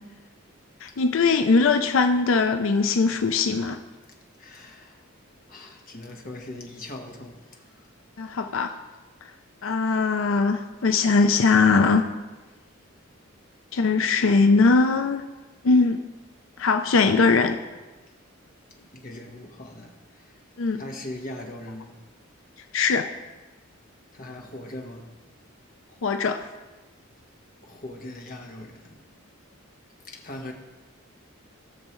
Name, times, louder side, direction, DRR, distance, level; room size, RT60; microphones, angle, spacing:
voice 1, 0.8-3.8 8.2-8.7 9.6-12.0 13.7-15.2 15.6-16.0 16.6-17.6 20.6-20.8 22.7-23.1 26.0-26.5, left 4 dB, 65° left, 0.5 m, -20 dB
voice 2, 4.4-5.0 5.5-7.9 8.2-8.8 18.9-20.4 20.8-22.0 24.1-25.3 27.6-29.0 30.1-30.5, left 1 dB, 45° left, 1.3 m, -40 dB
17.0 x 6.5 x 3.1 m
head